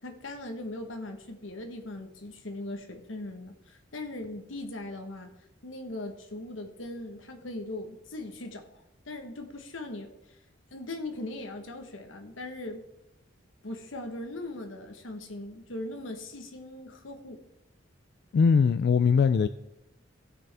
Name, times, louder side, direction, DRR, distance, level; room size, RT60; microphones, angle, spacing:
voice 1, 0.0-5.3 5.6-10.1 10.7-12.8 13.6-17.4, left 2 dB, 90° left, 5 dB, 1.3 m, -39 dB
voice 2, 18.3-19.5, left 5 dB, 55° left, 12 dB, 0.3 m, -21 dB
17.5 x 6.2 x 3.4 m, 0.93 s
head